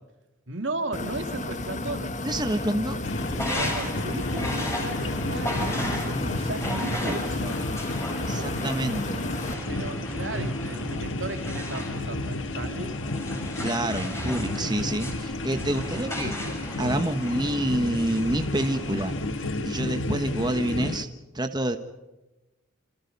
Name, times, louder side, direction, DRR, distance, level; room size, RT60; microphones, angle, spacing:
voice 1, 0.5-2.1 3.3-7.7 9.7-13.0, right 2 dB, 65° right, 7 dB, 2.7 m, -36 dB
sound 1, 0.9-9.5, left 2 dB, 40° left, 1.7 m, -33 dB
voice 2, 2.2-3.0 8.2-9.3 13.6-16.4 16.8-19.1 19.6-21.1 21.3-21.8, right 1 dB, 20° right, 7 dB, 1.4 m, -28 dB
sound 2, 3.0-21.0, left 1 dB, 75° left, 1.7 m, -32 dB
sound 3, 3.2-19.5, left 1 dB, 15° left, 6.6 m, -35 dB
28.0 x 27.5 x 5.4 m, 1.1 s
head